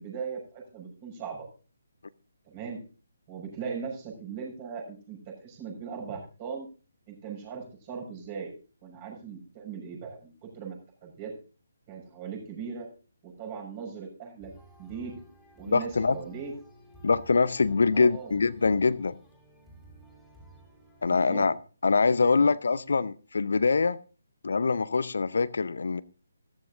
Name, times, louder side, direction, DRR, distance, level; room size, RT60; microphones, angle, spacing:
voice 1, 0.0-1.5 2.5-2.8 3.3-6.7 7.1-8.5 8.8-11.3 11.9-12.9 13.2-14.5 14.8-15.2 15.5-16.5 17.9-18.4 21.1-21.5 22.4-22.5, right 6 dB, 25° right, 6.4 m, -39 dB
sound 1, 14.4-21.1, right 1 dB, ahead, 4.3 m, -54 dB
voice 2, 15.7-16.2 17.0-19.2 21.0-21.5 21.8-24.0 24.4-26.0, left 4 dB, 60° left, 0.6 m, -24 dB
15.5 x 14.0 x 2.5 m
figure-of-eight pair, 140°, 0 cm